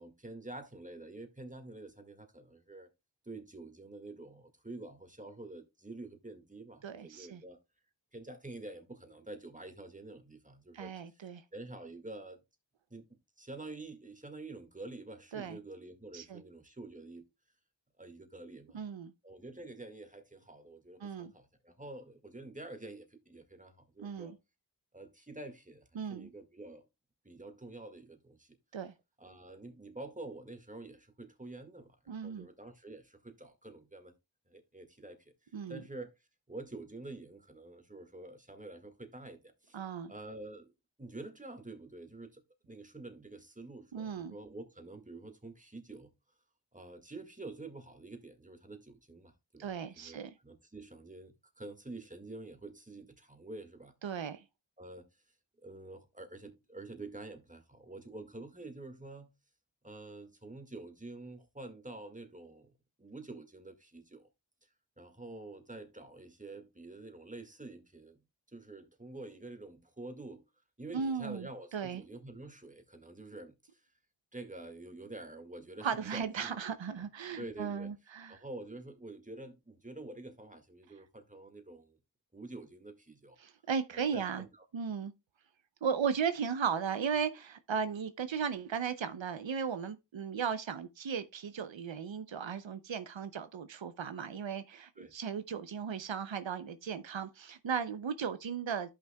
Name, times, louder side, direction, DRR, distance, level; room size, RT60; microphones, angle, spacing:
voice 1, 0.0-2.9 3.2-7.6 8.1-12.4 12.9-17.3 18.0-18.8 19.2-24.3 24.9-26.9 27.2-28.6 29.2-34.1 34.5-39.8 40.1-40.7 41.0-46.1 46.7-50.2 50.4-54.0 54.8-55.2 55.6-59.3 59.8-64.3 65.0-68.2 68.5-70.4 70.8-73.9 74.3-77.0 77.4-77.9 78.3-82.0 82.3-83.4 83.9-84.6 95.0-95.1, right 2 dB, 15° right, 1.8 m, -48 dB
voice 2, 6.8-7.4 10.7-11.4 15.3-15.6 16.1-16.4 18.7-19.1 21.0-21.3 24.0-24.4 26.0-26.3 28.7-28.9 32.1-32.5 35.5-35.8 39.7-40.1 43.9-44.3 49.6-50.3 54.0-54.4 70.9-72.0 75.8-78.4 83.4-84.4 84.7-85.1 85.8-98.9, right 6 dB, 90° right, 0.7 m, -36 dB
13.5 x 5.8 x 2.2 m
wide cardioid pair, 40°, 45 cm